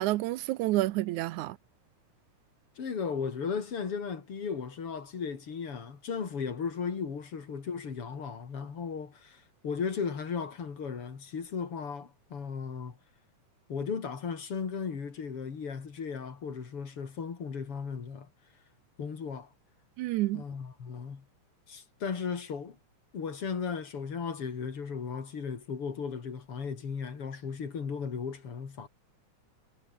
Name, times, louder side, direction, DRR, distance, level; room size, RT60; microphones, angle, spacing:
voice 1, 0.0-1.6 20.0-20.4, right 17 dB, 80° right, 2.1 m, -29 dB
voice 2, 2.8-13.0 13.7-18.3 19.0-19.5 20.3-21.3 21.7-22.8 23.1-28.9, left 6 dB, 45° left, 3.6 m, -36 dB
omnidirectional pair, 3.5 m